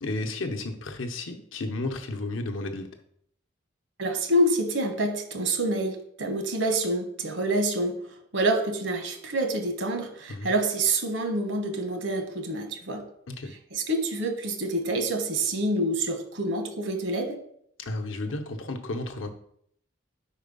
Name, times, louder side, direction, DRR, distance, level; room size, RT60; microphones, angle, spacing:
voice 1, 0.0-2.9 10.3-10.5 13.3-13.5 17.8-19.3, left 2 dB, 80° left, 4 dB, 0.8 m, -32 dB
voice 2, 4.0-8.0 8.3-13.0 13.7-17.4, right 1 dB, 75° right, 4 dB, 1.1 m, -27 dB
5.1 x 4.4 x 5.3 m, 0.68 s
head